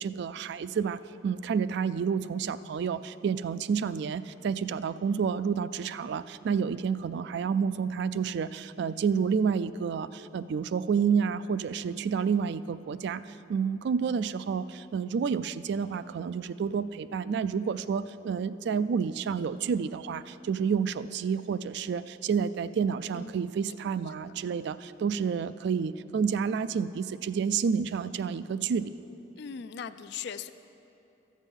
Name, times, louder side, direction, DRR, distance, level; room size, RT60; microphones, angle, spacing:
voice 1, 0.0-29.0, right 6 dB, 65° right, 15 dB, 0.3 m, -29 dB
voice 2, 24.1-24.4 29.4-30.5, left 7 dB, 60° left, 12 dB, 0.4 m, -40 dB
13.0 x 7.4 x 5.4 m, 2.9 s
head